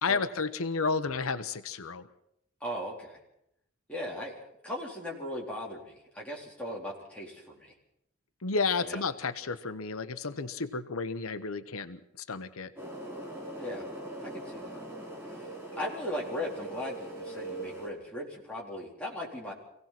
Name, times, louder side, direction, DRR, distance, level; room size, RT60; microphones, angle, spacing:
voice 1, 0.0-2.1 8.4-12.7, left 4 dB, 90° left, 11 dB, 1.0 m, -32 dB
voice 2, 2.6-3.2 3.9-4.3 4.6-7.7 8.8-9.0 13.6-13.8 14.2-14.8 15.3-19.5, left 1 dB, 5° left, -3 dB, 4.1 m, -38 dB
sound 1, 12.8-17.9, right 2 dB, 10° right, 3.5 m, -41 dB
25.0 x 17.5 x 6.0 m, 0.76 s
head